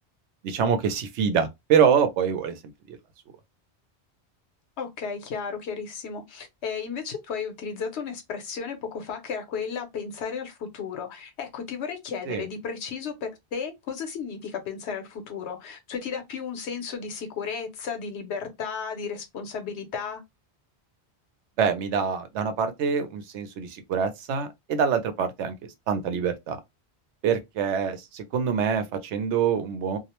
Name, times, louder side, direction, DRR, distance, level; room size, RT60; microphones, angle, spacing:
voice 1, 0.4-2.6 2.9-3.0 12.3-12.4 21.6-26.6 27.2-30.0, right 7 dB, 90° right, 0.9 m, -25 dB
voice 2, 4.8-20.2, left 6 dB, 75° left, 1.0 m, -34 dB
2.4 x 2.0 x 2.9 m
omnidirectional pair, 1.1 m